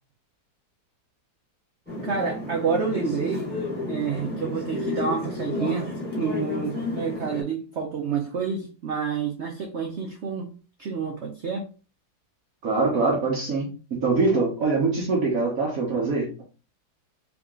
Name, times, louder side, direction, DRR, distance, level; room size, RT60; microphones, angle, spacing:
sound 1, 1.9-7.4, left 2 dB, 5° left, 1.4 m, -31 dB
voice 1, 2.0-3.5 3.9-10.5 10.8-11.7, right 5 dB, 75° right, 0.6 m, -28 dB
voice 2, 12.6-16.4, right 3 dB, 55° right, 1.3 m, -24 dB
3.7 x 2.9 x 3.6 m
omnidirectional pair, 2.0 m